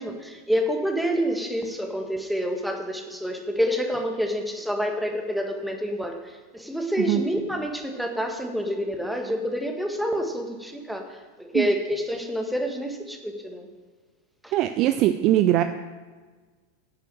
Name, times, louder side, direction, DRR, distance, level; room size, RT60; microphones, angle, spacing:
voice 1, 0.0-13.7 14.4-14.5, equal, ahead, 3 dB, 1.6 m, -28 dB
voice 2, 14.5-15.6, right 13 dB, 40° right, 10 dB, 0.5 m, -21 dB
9.9 x 6.8 x 7.7 m, 1.4 s
figure-of-eight pair, 90°, 0 cm